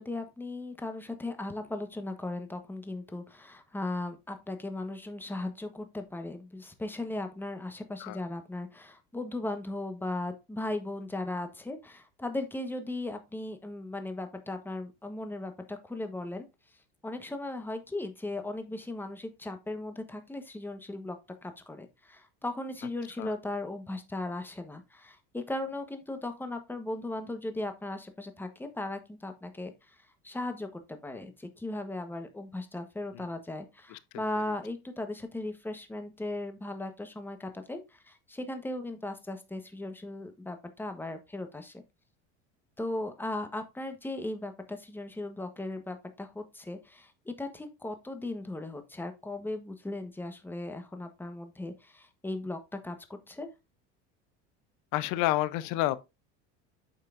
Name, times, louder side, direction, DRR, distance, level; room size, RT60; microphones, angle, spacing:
voice 1, 0.0-16.5 17.0-21.2 21.4-30.0 30.2-41.8 42.8-53.5, left 2 dB, 5° left, 1.1 m, -37 dB
voice 2, 54.9-56.0, left 15 dB, 65° left, 0.7 m, -29 dB
8.6 x 5.6 x 2.5 m
supercardioid pair, 110°, 32 cm